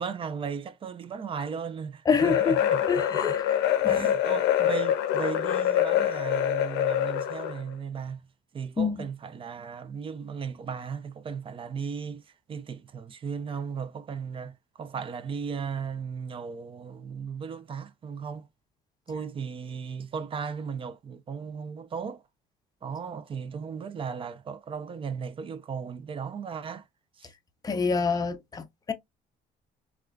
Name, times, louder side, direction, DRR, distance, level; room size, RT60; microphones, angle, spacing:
voice 1, 0.0-3.4 3.9-8.3 8.5-12.2 12.5-18.5 19.1-22.2 22.8-26.8 27.2-27.3, right 6 dB, 30° right, 0.4 m, -36 dB
voice 2, 2.1-2.6 2.9-4.2 8.8-9.1 27.6-28.9, left 5 dB, 20° left, 0.5 m, -27 dB
sound 1, 2.2-7.6, left 10 dB, 90° left, 0.5 m, -25 dB
3.6 x 2.3 x 2.3 m
cardioid pair, 110°, 17 cm